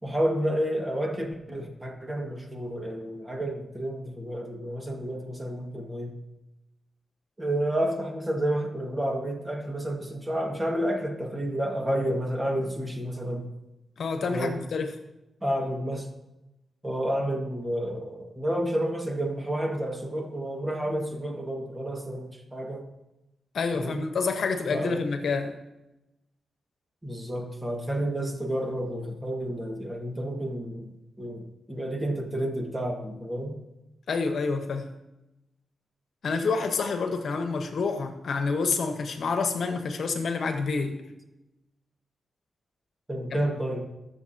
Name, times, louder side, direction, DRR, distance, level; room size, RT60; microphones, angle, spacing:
voice 1, 0.0-6.2 7.4-13.5 14.3-14.6 15.4-16.1 16.8-22.9 23.7-24.0 24.7-25.1 27.0-30.9 31.2-33.6 43.1-43.9, right 1 dB, 15° right, 1.8 m, -30 dB
voice 2, 14.0-14.9 23.5-25.5 34.1-34.9 36.2-41.0 43.3-43.4, left 4 dB, 70° left, 1.2 m, -28 dB
21.0 x 7.2 x 2.9 m
cardioid pair, 100°, 0 cm